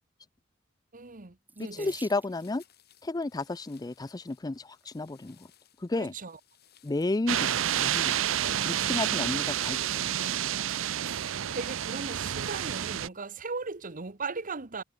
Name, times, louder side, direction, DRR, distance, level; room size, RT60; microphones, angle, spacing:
voice 1, 0.9-1.9 5.9-6.4 8.4-9.1 11.5-14.8, right 4 dB, 45° right, 1.3 m, -38 dB
Water tap faucet / Sink (filling or washing), 1.5-2.7 3.7-4.1 4.8-4.9 5.3-5.4, right 3 dB, 10° right, 0.8 m, -51 dB
voice 2, 1.7-2.6 3.0-5.5 5.8-6.1 6.8-8.2 8.6-10.1, left 2 dB, 20° left, 0.4 m, -32 dB
sound 1, 2.2-11.5, left 11 dB, 55° left, 7.4 m, -61 dB
sound 2, 7.3-13.1, right 10 dB, 85° right, 0.6 m, -29 dB
head